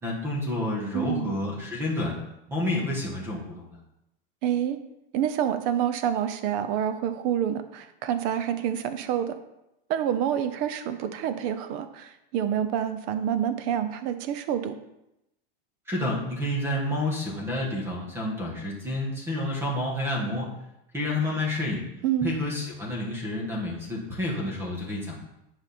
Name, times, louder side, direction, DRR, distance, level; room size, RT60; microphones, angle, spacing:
voice 1, 0.0-2.2 2.5-3.8 15.9-20.5 20.9-21.8 22.2-25.2, left 1 dB, 10° right, -2 dB, 1.4 m, -29 dB
voice 2, 0.9-1.3 4.4-4.8 5.1-9.4 9.9-14.8 22.0-22.4, right 9 dB, 30° right, 10 dB, 0.5 m, -27 dB
10.0 x 5.1 x 4.2 m, 0.87 s
supercardioid pair, 175°, 29 cm